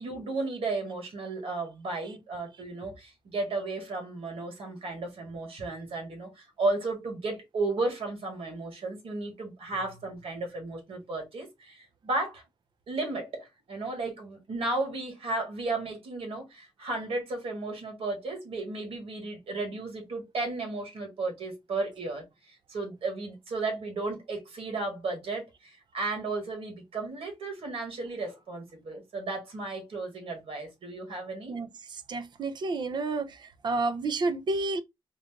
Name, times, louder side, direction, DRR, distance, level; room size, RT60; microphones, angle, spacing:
voice 1, 0.0-12.4 12.9-31.5, right 3 dB, 75° right, 1.7 m, -34 dB
voice 2, 31.5-34.8, right 3 dB, 50° right, 0.5 m, -30 dB
3.9 x 2.4 x 3.6 m
wide cardioid pair, 175°, 10 cm